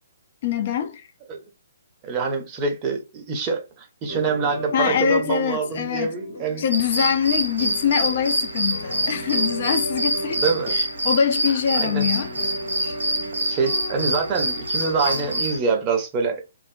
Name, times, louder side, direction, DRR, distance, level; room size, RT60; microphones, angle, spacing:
voice 1, 0.4-1.0 4.7-6.1 6.6-12.3 12.8-12.9, left 8 dB, 40° left, 0.4 m, -24 dB
voice 2, 2.0-6.6 10.4-10.8 11.8-12.1 13.5-16.4, right 5 dB, 25° right, 0.6 m, -25 dB
sound 1, 4.1-15.4, right 1 dB, 70° left, 1.5 m, -35 dB
sound 2, 6.7-15.6, right 1 dB, 70° right, 0.6 m, -26 dB
2.5 x 2.0 x 2.5 m
figure-of-eight pair, 125°, 0 cm